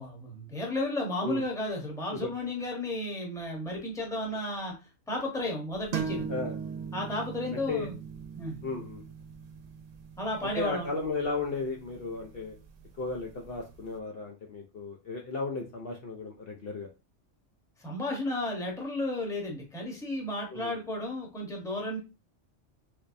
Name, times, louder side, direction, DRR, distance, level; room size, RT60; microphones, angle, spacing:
voice 1, 0.0-4.7 5.1-6.3 6.9-7.9 8.3-8.6 10.2-10.9 17.8-22.0, left 1 dB, 5° left, -1 dB, 0.8 m, -33 dB
sound 1, 5.9-13.4, right 6 dB, 80° right, 0.9 m, -40 dB
voice 2, 8.6-9.0 10.6-12.5 13.0-16.9 20.5-20.7, left 3 dB, 60° left, 0 dB, 0.7 m, -34 dB
3.3 x 3.0 x 2.5 m, 0.29 s
omnidirectional pair, 1.3 m